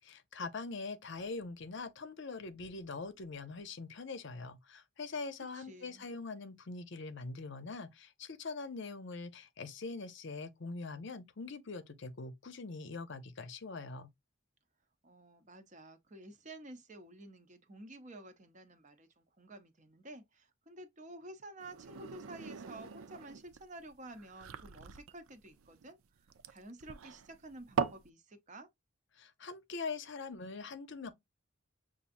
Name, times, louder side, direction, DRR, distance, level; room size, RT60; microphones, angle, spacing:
voice 1, 0.1-14.1 29.2-31.1, left 3 dB, 55° left, 0.7 m, -43 dB
voice 2, 5.5-6.0 15.0-28.7, right 1 dB, 35° right, 0.7 m, -51 dB
sound 1, 21.6-28.1, right 6 dB, 85° right, 0.5 m, -41 dB
6.9 x 2.6 x 2.5 m
head